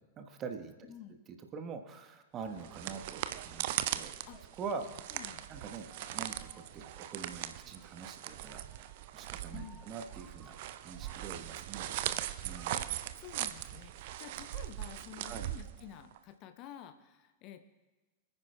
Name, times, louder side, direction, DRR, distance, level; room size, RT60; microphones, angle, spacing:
voice 1, 0.0-0.9 1.3-4.2 4.6-4.9 5.5-8.6 9.1-10.6 10.8-11.9 12.4-12.7 15.2-15.5, right 5 dB, 30° right, 6 dB, 1.1 m, -44 dB
sound 1, 2.3-12.7, right 2 dB, 10° right, 2.8 m, -62 dB
sound 2, 2.5-16.2, right 13 dB, 50° right, 0.5 m, -40 dB
voice 2, 5.1-5.4 9.5-9.8 12.7-17.6, left 11 dB, 40° left, 8 dB, 0.7 m, -50 dB
25.0 x 9.9 x 2.2 m, 1.2 s
figure-of-eight pair, 90°, 0 cm